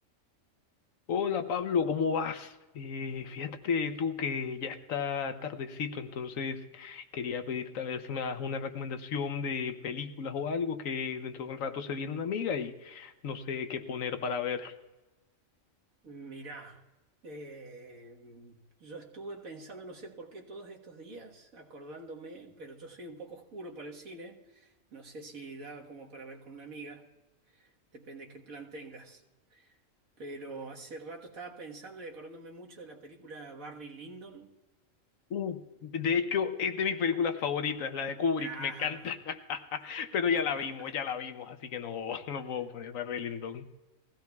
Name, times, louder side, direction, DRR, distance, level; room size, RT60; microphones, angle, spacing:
voice 1, 1.1-14.7 35.3-43.7, left 6 dB, 75° left, 1.2 m, -33 dB
voice 2, 16.0-16.8 17.2-27.1 27.5-29.2 29.5-29.8 30.2-34.6 38.4-39.1 39.8-39.9 40.3-40.9, right 2 dB, 85° right, 1.9 m, -45 dB
22.0 x 16.0 x 2.3 m
omnidirectional pair, 1.4 m